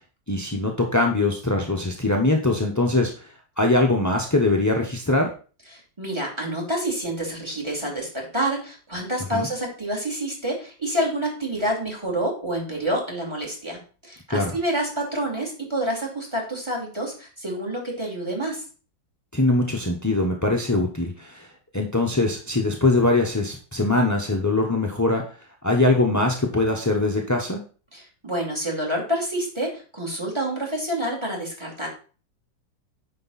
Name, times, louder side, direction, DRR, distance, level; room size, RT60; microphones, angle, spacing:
voice 1, 0.3-3.3 3.6-5.3 9.3-9.5 14.3-14.5 19.3-21.5 21.7-25.2 25.6-27.6, left 2 dB, 20° left, 1 dB, 0.4 m, -22 dB
voice 2, 5.7-18.6 27.9-31.9, right 1 dB, 15° right, 0 dB, 2.6 m, -28 dB
9.4 x 5.3 x 4.1 m, 0.37 s
omnidirectional pair, 2.1 m